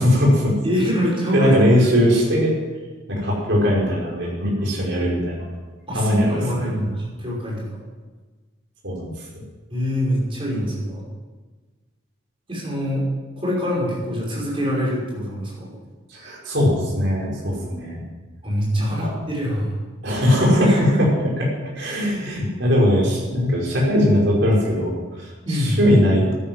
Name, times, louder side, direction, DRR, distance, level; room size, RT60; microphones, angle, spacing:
voice 1, 0.0-0.5 1.3-2.5 3.1-5.5 5.9-6.7 8.8-9.1 9.4-9.5 16.1-18.0 18.7-19.1 20.0-21.1 21.4-21.5 21.8-26.3, equal, 60° right, -3 dB, 5.4 m, -20 dB
voice 2, 0.6-1.7 5.9-7.8 9.7-11.0 12.5-13.0 13.4-15.7 18.4-19.7 20.6-21.0 25.4-25.8, equal, 25° right, -5 dB, 5.6 m, -24 dB
12.5 x 10.0 x 7.6 m, 1.3 s
head